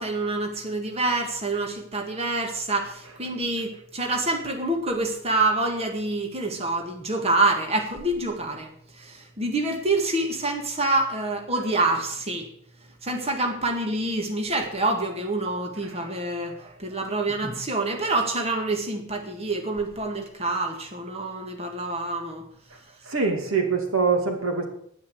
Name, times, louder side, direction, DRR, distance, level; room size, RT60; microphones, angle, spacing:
voice 1, 0.0-12.5 13.0-22.4, right 2 dB, 30° right, 2 dB, 1.9 m, -27 dB
voice 2, 23.0-24.7, right 4 dB, 90° right, 4 dB, 2.7 m, -24 dB
10.0 x 9.9 x 7.9 m, 0.66 s
head